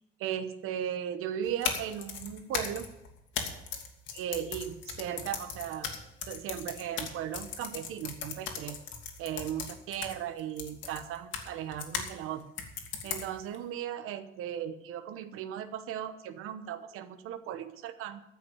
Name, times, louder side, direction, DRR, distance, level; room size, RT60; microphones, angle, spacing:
voice 1, 0.2-2.9 4.1-5.9 6.3-8.8 9.2-12.5 13.0-18.2, right 10 dB, 90° right, 11 dB, 1.0 m, -37 dB
sound 1, 1.4-12.1 12.6-13.6, left 6 dB, 65° left, 2.2 m, -38 dB
14.0 x 5.9 x 8.7 m, 0.87 s
cardioid pair, 145°, 21 cm